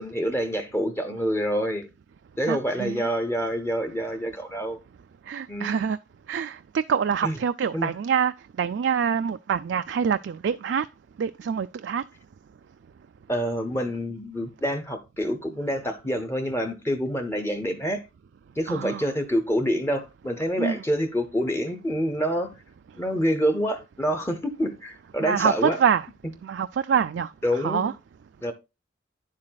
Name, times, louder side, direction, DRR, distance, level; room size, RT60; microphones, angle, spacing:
voice 1, 0.0-1.9 2.4-4.8 5.5-5.9 7.2-7.4 7.7-7.9 13.3-18.0 18.6-22.5 22.9-25.8 27.4-27.9 28.4-28.5, equal, 15° left, 0.8 m, -27 dB
voice 2, 2.5-3.1 5.3-6.0 6.3-10.9 11.2-12.0 18.7-19.0 20.6-20.8 25.2-26.1 26.4-27.3 27.6-27.9, right 7 dB, 75° right, 0.3 m, -25 dB
9.6 x 7.4 x 2.3 m
head